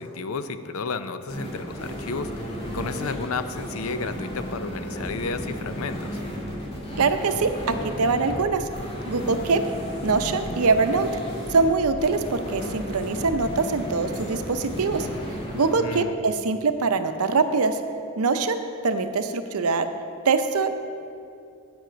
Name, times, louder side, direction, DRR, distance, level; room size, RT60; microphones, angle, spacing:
voice 1, 0.0-6.2 15.7-16.1, left 4 dB, 70° left, 11 dB, 0.5 m, -32 dB
sound 1, 1.3-15.7, equal, 25° left, 2.3 m, -34 dB
voice 2, 7.0-7.5 8.0-8.7 9.0-9.6 10.0-11.1 11.5-15.1 15.5-17.8 18.2-19.9 20.2-20.7, right 4 dB, 80° right, 9 dB, 0.6 m, -23 dB
9.1 x 8.8 x 5.1 m, 2.5 s
head